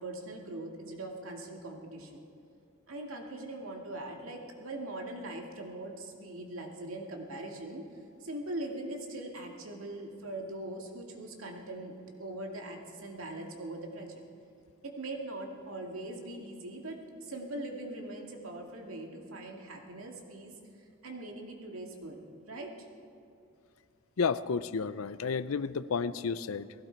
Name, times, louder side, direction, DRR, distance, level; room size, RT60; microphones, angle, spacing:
voice 1, 0.0-2.2 2.9-7.9 8.2-14.2 14.8-20.5 21.0-22.2 22.5-22.7, right 1 dB, 85° right, 2 dB, 2.1 m, -41 dB
voice 2, 24.2-26.7, left 5 dB, 85° left, 15 dB, 0.5 m, -31 dB
19.0 x 16.0 x 4.5 m, 2.6 s
head